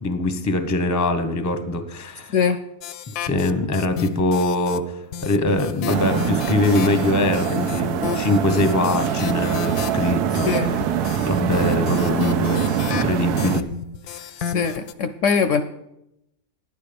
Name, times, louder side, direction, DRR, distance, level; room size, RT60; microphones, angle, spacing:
voice 1, 0.0-2.3 3.2-10.5 11.3-13.6 14.1-14.2, left 2 dB, 15° left, 8 dB, 0.6 m, -23 dB
sound 1, 2.8-4.8 5.1-14.9, left 8 dB, 85° left, 1.1 m, -33 dB
sound 2, 5.9-13.6, right 9 dB, 90° right, 1.2 m, -24 dB
voice 2, 10.4-10.7 14.4-15.6, left 6 dB, 65° left, 9 dB, 0.8 m, -21 dB
11.0 x 9.4 x 5.1 m, 0.84 s
omnidirectional pair, 1.6 m